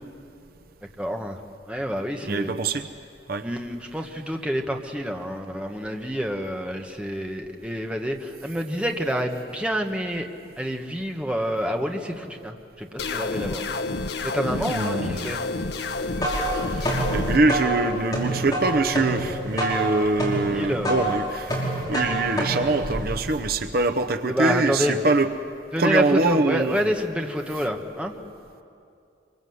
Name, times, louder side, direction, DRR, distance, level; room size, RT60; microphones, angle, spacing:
voice 1, 1.0-1.4 1.7-2.5 3.4-10.3 10.6-13.7 14.2-15.4 20.5-21.2 24.3-25.0 25.7-28.1, equal, 5° right, 3 dB, 1.3 m, -28 dB
voice 2, 2.3-2.9 3.3-3.4 14.5-15.3 16.5-25.3 25.8-26.8, right 3 dB, 50° right, 7 dB, 0.8 m, -24 dB
sound 1, 13.0-17.4, left 3 dB, 60° left, 1.0 m, -29 dB
sound 2, 15.9-23.6, right 1 dB, 20° left, 5.4 m, -27 dB
25.5 x 24.0 x 7.9 m, 2.5 s
head